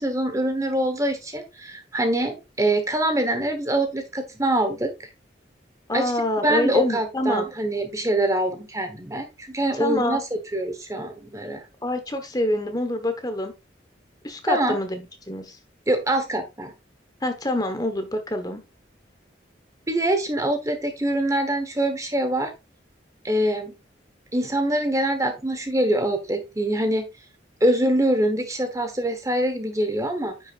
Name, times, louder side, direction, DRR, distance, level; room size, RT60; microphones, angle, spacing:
voice 1, 0.0-4.9 5.9-6.1 6.4-10.2 10.5-11.6 14.5-14.8 15.9-16.7 19.9-22.5 23.2-23.7 24.3-27.1 27.6-30.5, right 1 dB, 15° right, 7 dB, 1.1 m, -24 dB
voice 2, 5.9-7.4 9.7-10.2 11.8-13.5 14.2-15.0 15.3-15.6 17.2-18.6, left 1 dB, 20° left, 7 dB, 1.1 m, -26 dB
9.8 x 6.1 x 2.4 m, 0.25 s
head